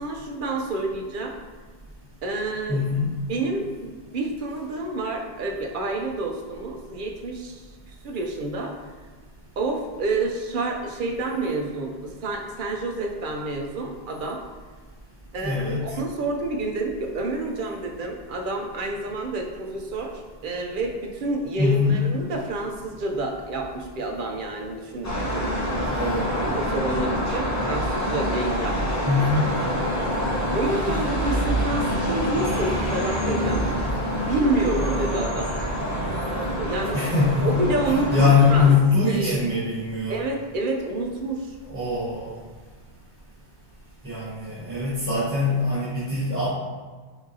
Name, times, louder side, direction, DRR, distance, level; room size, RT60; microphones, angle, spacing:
voice 1, 0.0-1.4 2.2-2.8 3.3-8.7 9.6-14.4 15.3-25.6 26.4-29.5 30.5-33.7 34.2-35.5 36.6-37.0 37.4-38.7 39.1-39.4 40.1-41.5, right 2 dB, 60° right, 1 dB, 0.7 m, -29 dB
voice 2, 2.7-3.1 15.4-16.0 21.6-22.0 25.9-26.4 29.0-29.5 36.9-37.5 38.1-40.2 41.6-42.3 44.0-46.5, left 4 dB, 15° right, -12 dB, 1.0 m, -22 dB
sound 1, 25.0-38.8, equal, 20° left, 0.6 m, -26 dB
5.8 x 2.6 x 2.7 m, 1.4 s
omnidirectional pair, 1.1 m